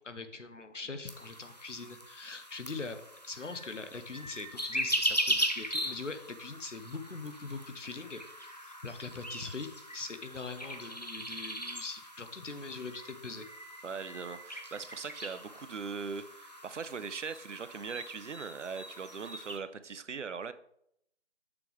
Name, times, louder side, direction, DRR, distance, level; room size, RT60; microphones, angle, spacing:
voice 1, 0.0-13.5, left 4 dB, 85° left, 9 dB, 1.1 m, -42 dB
sound 1, 1.1-19.6, equal, 35° left, 0.6 m, -39 dB
voice 2, 13.8-20.5, right 5 dB, 80° right, 13 dB, 0.6 m, -40 dB
6.8 x 6.1 x 3.5 m, 0.73 s
figure-of-eight pair, 175°, 36 cm